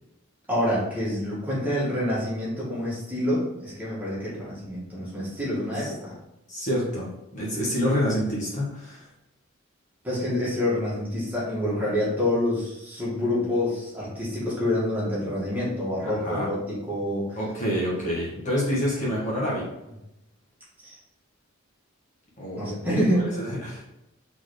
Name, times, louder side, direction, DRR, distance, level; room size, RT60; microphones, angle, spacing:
voice 1, 0.5-6.1 10.0-17.3 20.8-21.0 22.6-23.2, left 1 dB, 10° right, -8 dB, 2.0 m, -27 dB
voice 2, 6.5-9.1 16.0-16.5 17.4-19.7 22.4-23.8, equal, 35° left, -6 dB, 1.4 m, -28 dB
4.6 x 4.1 x 5.0 m, 0.89 s
head